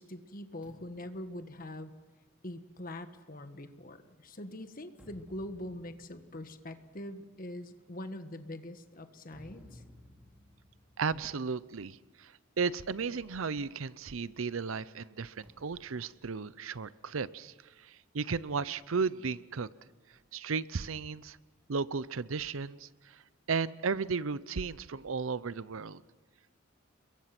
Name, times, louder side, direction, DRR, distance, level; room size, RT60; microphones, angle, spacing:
voice 1, 0.0-1.9 2.4-9.8, left 1 dB, 45° left, 8 dB, 1.6 m, -43 dB
sound 1, 0.6-4.2 4.7-12.2 12.4-12.6 13.0-14.6 15.4-17.2, left 1 dB, 5° right, 3.2 m, -60 dB
voice 2, 11.0-19.7 20.3-21.4 21.7-23.2 23.5-26.0, right 5 dB, 80° right, 17 dB, 0.7 m, -35 dB
30.0 x 22.5 x 6.0 m, 1.3 s
head